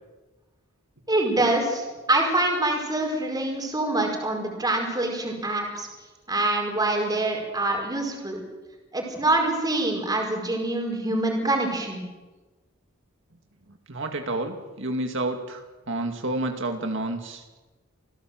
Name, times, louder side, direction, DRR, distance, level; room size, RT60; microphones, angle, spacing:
voice 1, 1.1-5.9 6.3-8.4 8.9-12.0, right 2 dB, 20° right, 1 dB, 5.0 m, -25 dB
voice 2, 13.9-17.4, right 2 dB, 65° right, 4 dB, 2.2 m, -30 dB
27.0 x 17.0 x 7.7 m, 1.2 s
head